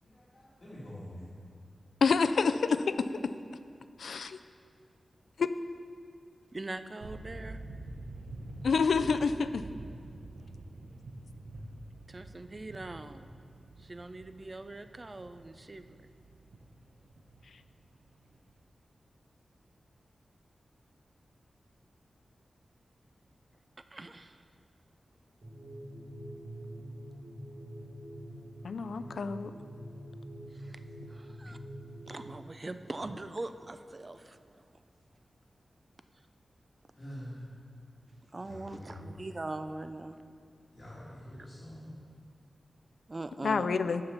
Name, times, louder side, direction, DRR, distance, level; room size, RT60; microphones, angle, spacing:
voice 1, 0.0-1.3 36.9-37.5 38.4-39.1 40.7-42.0, equal, 35° left, -10 dB, 1.7 m, -46 dB
voice 2, 2.0-2.9 4.0-4.4 5.4-5.5 8.6-9.6 28.6-29.5 43.4-44.0, left 5 dB, 90° left, 11 dB, 0.3 m, -27 dB
voice 3, 6.5-7.6 12.1-13.3 13.8-16.0 23.9-24.4 30.5-31.6 32.1-34.8 38.3-40.2 41.4-41.5 43.1-43.7, right 2 dB, 30° right, 10 dB, 0.3 m, -42 dB
sound 1, 7.0-18.5, right 2 dB, 75° right, 0.7 m, -47 dB
sound 2, 25.4-32.2, equal, 45° right, 1.3 m, -45 dB
6.9 x 5.6 x 6.7 m, 2.4 s
wide cardioid pair, 145°, 0 cm